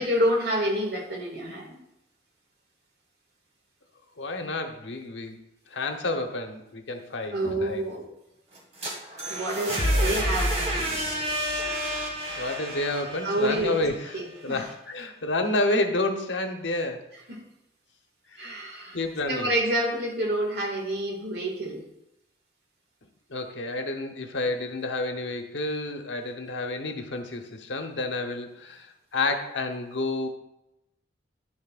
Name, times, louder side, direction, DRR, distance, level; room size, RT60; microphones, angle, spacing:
voice 1, 0.0-1.8 7.3-8.0 9.3-11.2 13.2-13.8 14.1-14.7 17.3-17.4 18.4-19.0 19.3-21.8, right 1 dB, 60° right, 0 dB, 1.9 m, -28 dB
voice 2, 4.2-5.4 5.7-7.8 9.8-10.3 11.7-12.1 12.4-14.1 14.4-17.1 18.3-18.6 18.9-19.5 23.3-30.3, left 2 dB, 85° left, 5 dB, 1.0 m, -30 dB
sound 1, 8.5-14.4, equal, 35° right, 1.9 m, -29 dB
10.5 x 7.3 x 2.5 m, 0.86 s
head